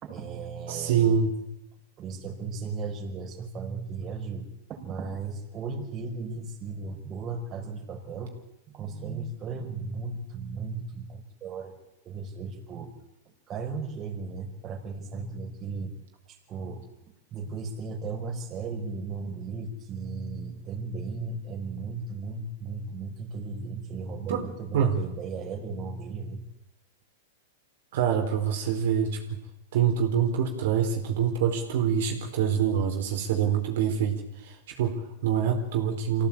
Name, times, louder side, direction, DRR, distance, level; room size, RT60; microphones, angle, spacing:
voice 1, 0.0-1.2 2.0-8.3 8.7-11.7 12.1-12.9 13.5-15.9 16.5-16.8 17.3-26.4, right 4 dB, 30° right, 3 dB, 5.7 m, -36 dB
voice 2, 0.7-1.3 24.3-24.4 24.7-25.0 27.9-29.2 29.7-36.3, right 7 dB, 65° right, 2 dB, 4.5 m, -25 dB
25.0 x 17.0 x 9.0 m, 0.86 s
hypercardioid pair, 115°, 0 cm